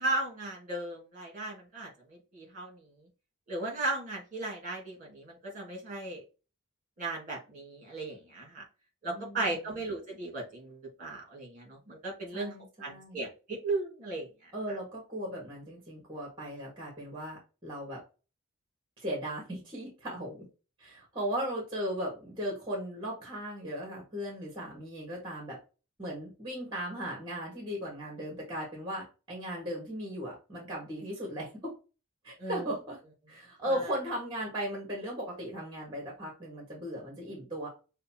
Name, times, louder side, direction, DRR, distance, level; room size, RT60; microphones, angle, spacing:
voice 1, 0.0-1.9 2.3-2.8 3.5-6.2 7.0-8.6 9.0-12.5 12.8-14.3 32.4-32.6, right 2 dB, 35° right, -1 dB, 1.8 m, -36 dB
voice 2, 9.1-9.7 12.3-13.2 14.5-18.0 19.0-20.5 20.8-25.6 26.0-31.7 32.2-33.0 33.3-37.7, equal, 20° right, -1 dB, 1.5 m, -37 dB
6.4 x 2.3 x 2.8 m, 0.31 s
head